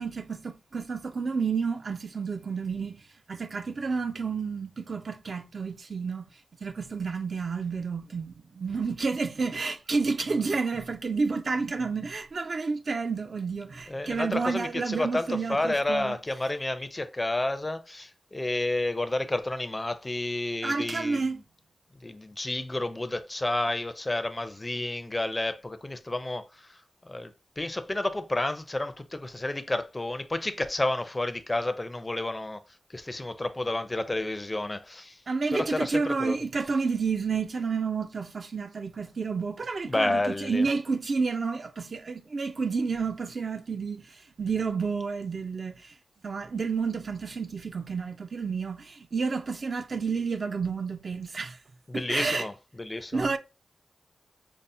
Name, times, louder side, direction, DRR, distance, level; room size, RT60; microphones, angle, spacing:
voice 1, 0.0-6.3 6.6-16.2 20.6-21.4 35.3-46.0 46.2-51.6 51.9-52.5 53.1-53.4, right 4 dB, 55° right, 0.4 m, -30 dB
voice 2, 13.9-21.2 22.0-26.8 27.0-32.6 32.9-35.2 35.5-36.4 39.9-40.7 51.9-52.5 52.8-53.4, left 2 dB, 20° left, 0.4 m, -30 dB
5.3 x 2.0 x 2.5 m
wide cardioid pair, 80°, 0 cm